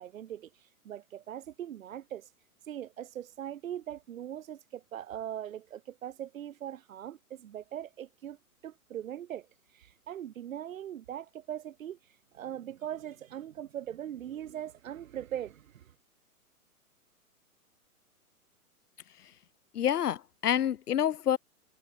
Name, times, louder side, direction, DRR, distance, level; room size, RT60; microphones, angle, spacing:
voice 1, 0.0-2.3 2.7-8.4 8.6-9.5 9.7-12.0 12.3-15.9, right 10 dB, 60° right, 2.0 m, -40 dB
voice 2, 19.7-21.4, left 10 dB, 85° left, 0.7 m, -27 dB
hypercardioid pair, 130°, 45 cm